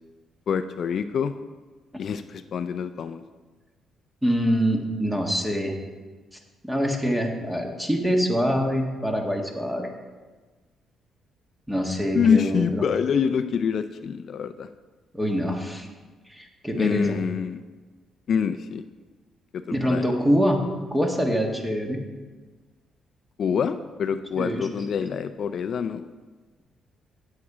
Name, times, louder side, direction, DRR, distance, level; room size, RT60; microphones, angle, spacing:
voice 1, 0.5-1.3 2.0-3.2 12.1-14.7 16.7-17.6 18.3-18.8 19.5-20.1 23.4-26.1, left 7 dB, 60° left, 10 dB, 0.4 m, -26 dB
voice 2, 4.2-5.7 6.6-9.9 11.7-12.8 15.1-15.9 16.3-17.2 19.7-20.6 20.9-22.0 24.4-24.7, equal, 10° right, 2 dB, 1.6 m, -24 dB
8.6 x 8.4 x 4.9 m, 1.3 s
cardioid pair, 90°, 0 cm